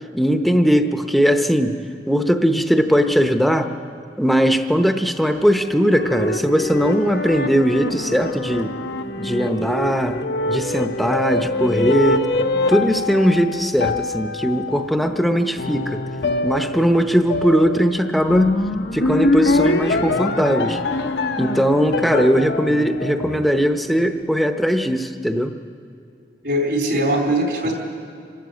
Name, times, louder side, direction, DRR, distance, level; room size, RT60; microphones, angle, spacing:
voice 1, 0.1-1.8 2.1-3.7 4.2-8.7 9.2-10.2 10.5-12.3 12.7-16.0 16.4-18.5 18.9-20.8 21.4-25.5, equal, ahead, 6 dB, 0.8 m, -19 dB
sound 1, 5.4-23.9, left 2 dB, 70° left, 0.9 m, -24 dB
voice 2, 26.4-27.7, right 1 dB, 70° right, 1 dB, 3.9 m, -20 dB
26.5 x 13.0 x 8.4 m, 2.4 s
head